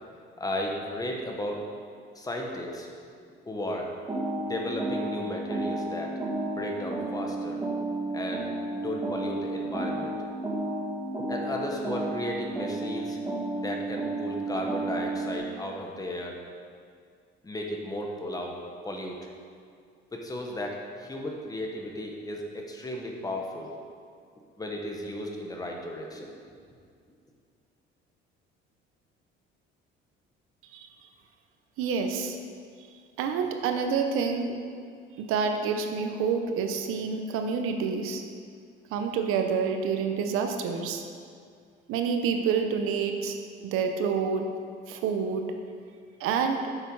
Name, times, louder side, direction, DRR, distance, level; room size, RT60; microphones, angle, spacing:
voice 1, 0.4-1.7 2.1-2.9 3.5-3.9 4.3-6.2 6.6-7.6 8.1-8.5 8.8-10.1 11.3-13.2 13.5-16.4 17.4-18.6 18.8-19.2 20.1-23.7 24.6-26.4, left 1 dB, 15° left, 0 dB, 1.2 m, -34 dB
sound 1, 4.1-15.4, right 2 dB, 15° right, 1.4 m, -32 dB
voice 2, 31.8-32.4 33.2-34.5 35.2-38.2 38.9-41.0 41.9-44.5 44.9-45.4 46.2-46.6, right 6 dB, 85° right, 5 dB, 0.9 m, -28 dB
8.8 x 6.8 x 4.7 m, 2.2 s
cardioid pair, 120°, 21 cm